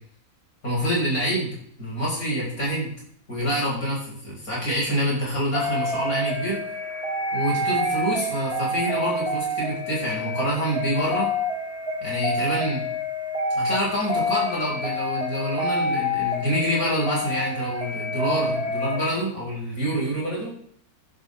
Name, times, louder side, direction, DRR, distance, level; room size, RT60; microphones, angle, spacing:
voice 1, 0.6-2.9 3.3-6.6 7.3-11.3 12.0-12.8 13.5-20.6, equal, 70° left, -5 dB, 7.1 m, -26 dB
sound 1, 5.5-19.1, left 1 dB, 5° left, 5.0 m, -28 dB
15.5 x 11.5 x 3.8 m, 0.62 s
omnidirectional pair, 1.6 m